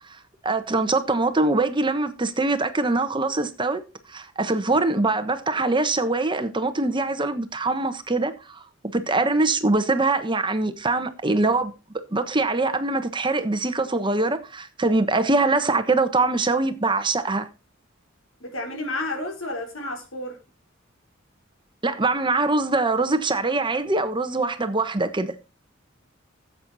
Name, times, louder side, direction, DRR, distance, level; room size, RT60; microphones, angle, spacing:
voice 1, 0.4-3.8 4.1-8.6 8.9-11.7 12.1-17.5 21.8-25.3, right 3 dB, 25° right, 1.2 m, -23 dB
voice 2, 18.4-20.4, left 2 dB, 90° left, 4.1 m, -31 dB
15.0 x 7.9 x 4.2 m
head